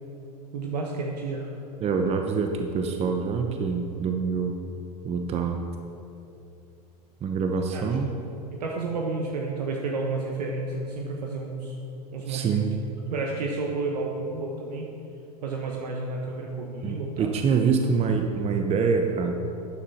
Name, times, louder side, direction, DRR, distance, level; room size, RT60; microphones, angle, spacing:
voice 1, 0.5-1.5 7.7-7.8 8.6-11.7 12.1-12.6 13.1-14.9 15.4-17.3, right 3 dB, 75° right, 0 dB, 1.3 m, -31 dB
voice 2, 1.8-4.6 5.0-5.6 7.2-8.1 12.3-12.7 16.8-19.3, right 5 dB, 30° right, 4 dB, 0.9 m, -25 dB
13.0 x 9.5 x 4.3 m, 2.8 s
hypercardioid pair, 95°, 21 cm